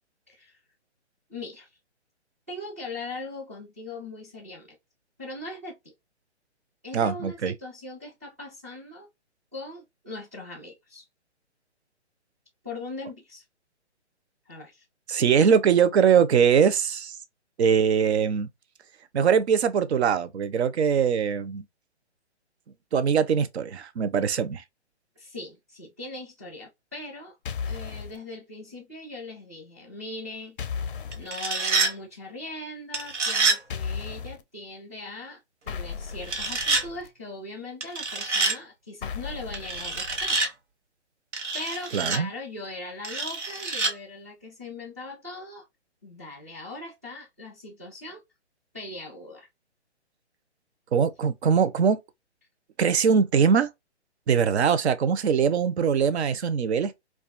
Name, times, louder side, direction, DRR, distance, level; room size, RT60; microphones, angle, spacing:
voice 1, 0.3-0.6 1.3-1.7 2.5-4.8 5.2-5.9 6.8-9.1 9.5-11.0 12.6-13.4 14.5-14.8 25.2-27.3 27.6-30.6 31.2-35.4 35.6-40.4 41.5-45.6 46.0-48.2 48.7-49.5, left 2 dB, 15° right, 0.4 m, -40 dB
voice 2, 6.9-7.5 15.1-17.2 17.6-18.5 19.1-21.6 22.9-24.6 41.9-42.3 50.9-52.0 52.8-53.7 54.3-56.9, right 7 dB, 70° right, 0.5 m, -22 dB
sound 1, 27.5-28.2 30.6-31.3 33.7-34.4 35.7-37.1 39.0-40.4, left 6 dB, 50° left, 0.4 m, -35 dB
sound 2, 31.1-31.9 32.9-33.6 36.2-36.8 37.8-38.6 39.5-40.5 41.3-42.2 43.0-43.9, right 3 dB, 85° right, 0.9 m, -26 dB
2.3 x 2.3 x 2.3 m
hypercardioid pair, 145°, 35 cm